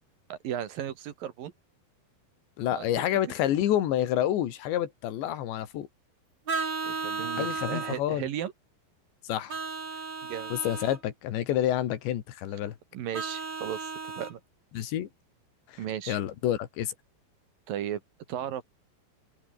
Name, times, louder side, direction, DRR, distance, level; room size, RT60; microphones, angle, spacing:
voice 1, 0.3-1.5 2.7-3.1 6.8-8.5 10.2-10.5 12.9-14.4 15.8-16.2 17.7-18.0 18.3-18.6, right 10 dB, 60° right, 3.0 m, -35 dB
voice 2, 2.6-5.9 7.4-8.2 9.2-9.6 10.5-12.8 14.7-15.1 15.7-15.8 16.1-16.9, left 11 dB, 85° left, 4.3 m, -28 dB
Vehicle horn car horn honking, 6.5-8.0 9.5-11.0 13.1-14.3, right 4 dB, 25° right, 3.6 m, -34 dB
open air
omnidirectional pair, 5.0 m